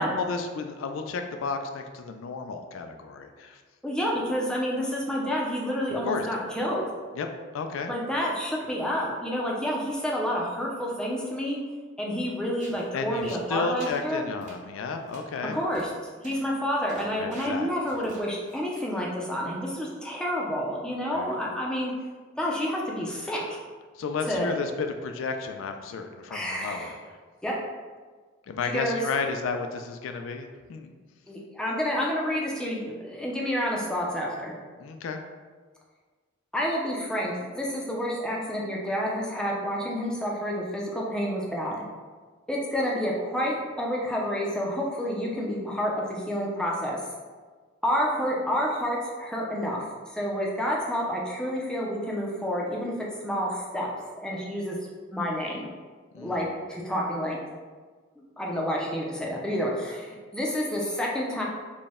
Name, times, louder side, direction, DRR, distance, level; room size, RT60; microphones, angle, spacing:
voice 1, 0.0-3.6 6.0-6.3 7.1-7.3 7.5-7.9 12.9-15.6 17.2-17.9 21.0-21.3 24.0-27.0 28.5-30.9 34.8-35.2 56.1-56.4, left 4 dB, 75° left, 6 dB, 0.3 m, -32 dB
voice 2, 3.8-6.9 7.9-11.6 12.0-14.2 15.5-15.9 16.2-21.9 22.4-23.6 24.2-24.5 26.3-27.0 27.4-27.5 28.6-29.0 31.3-34.6 36.5-41.8 42.5-47.1 47.8-52.9 53.2-53.9 54.1-54.8 55.1-55.7 56.2-57.4 58.2-61.4, equal, 5° left, -3 dB, 0.4 m, -29 dB
sound 1, 12.6-12.9 13.2-14.0 14.4-14.6 15.0-15.2 15.7-15.9 16.2-16.5 16.9-19.1, right 2 dB, 40° right, 0.9 m, -49 dB
4.1 x 2.1 x 3.5 m, 1.4 s
head